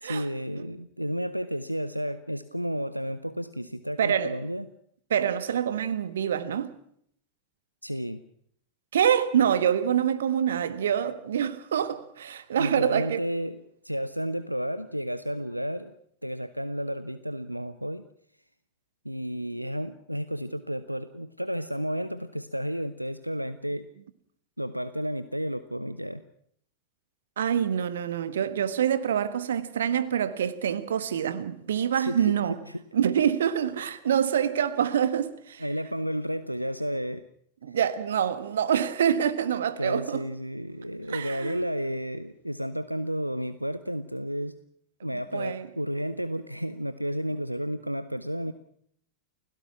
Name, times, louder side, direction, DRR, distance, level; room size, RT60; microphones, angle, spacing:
voice 1, 0.0-4.6 7.8-8.2 12.6-15.9 16.2-18.0 19.0-23.9 24.6-26.2 31.9-32.3 35.6-37.2 39.8-44.5 45.0-48.5, equal, 90° right, 0.8 m, -32 dB
voice 2, 4.0-4.3 5.1-6.7 8.9-13.2 27.4-32.6 32.9-35.6 37.6-40.2 41.1-41.6 45.1-45.7, right 9 dB, 65° right, 1.5 m, -26 dB
29.5 x 16.5 x 6.0 m
figure-of-eight pair, 90°, 0 cm